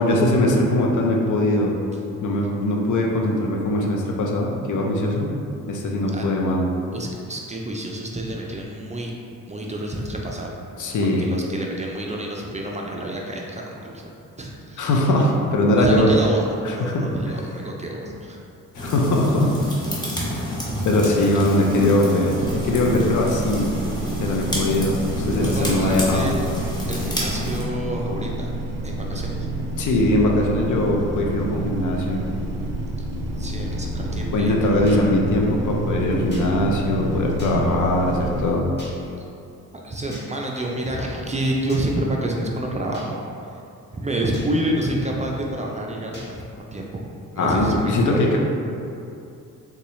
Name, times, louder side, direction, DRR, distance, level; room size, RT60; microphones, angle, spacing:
voice 1, 0.0-1.7 2.2-5.3 5.7-6.7 10.8-11.3 14.8-16.1 16.6-17.1 18.0-18.1 18.7-19.5 20.8-22.3 22.6-23.7 24.2-26.3 29.8-32.2 34.3-38.6 47.4-48.4, left 1 dB, 60° left, -1 dB, 0.6 m, -21 dB
voice 2, 6.9-9.1 9.5-10.5 11.0-14.9 15.7-18.4 20.1-20.3 20.7-21.3 25.3-26.4 26.9-28.6 28.8-29.5 33.4-35.0 39.7-43.2 43.9-47.0 47.3-48.4, right 1 dB, 20° right, -1 dB, 0.4 m, -28 dB
sound 1, 18.7-27.6, left 1 dB, 10° left, 1.0 m, -29 dB
sound 2, 22.4-38.5, right 2 dB, 80° right, 0.5 m, -29 dB
sound 3, 34.9-35.0 36.3-36.5 37.4-37.5 38.8-38.9 40.1-40.3 41.7-41.8 42.9-43.1 44.3-44.5 46.1-46.3, equal, 30° left, 1.3 m, -42 dB
3.8 x 2.3 x 3.1 m, 2.6 s
supercardioid pair, 60°, 34 cm